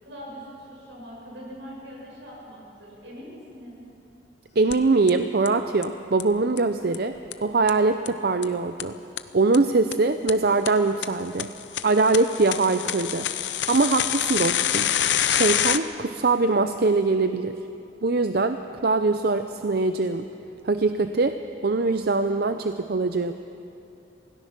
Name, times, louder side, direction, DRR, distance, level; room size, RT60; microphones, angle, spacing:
voice 1, 0.0-3.8, equal, 80° right, -3 dB, 7.1 m, -42 dB
voice 2, 4.6-7.1 7.4-8.9 9.3-11.5 11.8-13.3 13.7-14.9 15.3-17.6 18.0-20.3 20.6-21.4 21.6-23.3, right 3 dB, 55° right, 9 dB, 0.6 m, -22 dB
sound 1, 4.7-4.8 5.1-5.2 5.5-5.6 5.8-5.9 6.2-6.3 6.6-6.7 6.9-7.0 7.3-7.4 7.7-7.8 8.1-8.2 8.4-8.5 8.8-8.9 9.2-9.3 9.5-9.6 9.9-10.0 10.3-10.4 10.7-10.8 11.0-11.1 11.4-15.8, left 10 dB, 75° left, 0.7 m, -25 dB
26.5 x 18.0 x 5.9 m, 2.8 s
head